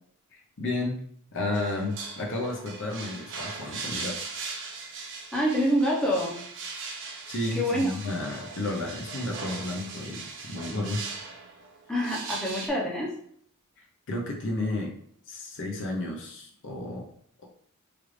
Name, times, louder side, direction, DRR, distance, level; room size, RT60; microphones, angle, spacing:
voice 1, 0.3-1.0 1.3-4.2 7.3-11.0 14.1-14.9 15.3-17.1, left 2 dB, 60° left, 0 dB, 0.7 m, -32 dB
sound 1, 1.5-12.7, right 4 dB, 55° right, 0.6 m, -39 dB
voice 2, 5.3-6.4 7.6-7.9 11.9-13.2, equal, 5° left, -4 dB, 0.7 m, -26 dB
3.3 x 2.5 x 3.1 m, 0.65 s
head